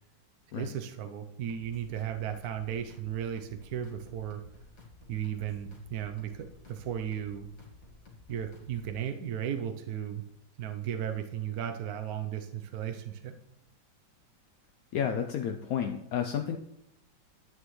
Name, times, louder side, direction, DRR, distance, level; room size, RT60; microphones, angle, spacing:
voice 1, 0.5-4.4 5.1-7.5 8.3-10.2 10.6-13.4, right 9 dB, 65° right, 6 dB, 1.0 m, -35 dB
sound 1, 1.5-9.0, left 2 dB, 45° left, 2.1 m, -54 dB
voice 2, 14.9-16.6, left 8 dB, 70° left, 5 dB, 0.9 m, -31 dB
11.5 x 8.4 x 3.1 m, 0.80 s
omnidirectional pair, 2.1 m